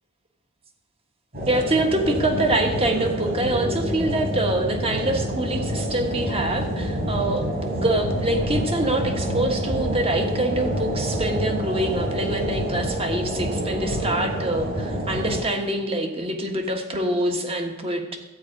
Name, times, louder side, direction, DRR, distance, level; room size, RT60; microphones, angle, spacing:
sound 1, 1.3-15.4, equal, 50° right, 3.9 m, -27 dB
voice 1, 1.5-18.2, right 1 dB, 30° right, 3 dB, 1.4 m, -25 dB
13.0 x 4.9 x 8.9 m, 1.0 s
head